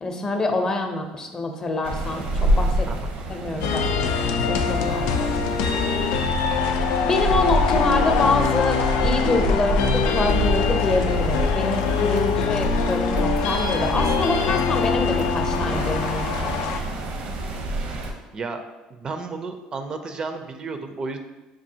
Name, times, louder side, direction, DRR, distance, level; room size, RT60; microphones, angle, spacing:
voice 1, 0.0-2.9 3.3-5.3 7.0-16.8, left 2 dB, 30° left, 5 dB, 0.5 m, -26 dB
sound 1, 1.8-18.1, right 1 dB, 75° right, 0.7 m, -27 dB
voice 2, 2.9-3.2 12.2-12.6 17.9-18.0 18.3-18.6 18.9-21.2, right 4 dB, 35° right, 7 dB, 0.4 m, -33 dB
sound 2, 3.6-16.8, left 6 dB, 90° left, 0.3 m, -24 dB
6.1 x 2.4 x 2.7 m, 1.1 s
cardioid pair, 110°, 2 cm